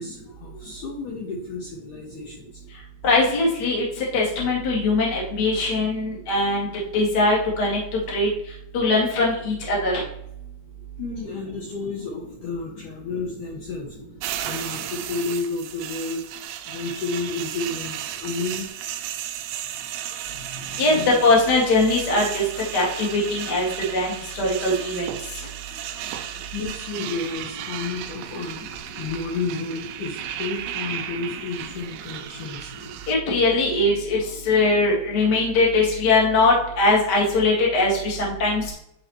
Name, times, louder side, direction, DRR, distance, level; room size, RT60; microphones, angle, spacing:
voice 1, 0.0-2.6 11.0-14.0 14.4-16.3 16.7-19.0 20.1-21.1 25.7-25.8 26.3-32.7, left 3 dB, 85° left, -2 dB, 1.7 m, -32 dB
voice 2, 3.0-6.7 6.9-7.8 8.1-8.3 8.7-9.9 20.8-22.4 22.7-25.0 33.1-38.7, left 2 dB, 50° left, -3 dB, 1.2 m, -21 dB
sound 1, 14.2-33.2, right 11 dB, 85° right, 2.3 m, -34 dB
10.5 x 4.1 x 3.0 m, 0.75 s
omnidirectional pair, 5.1 m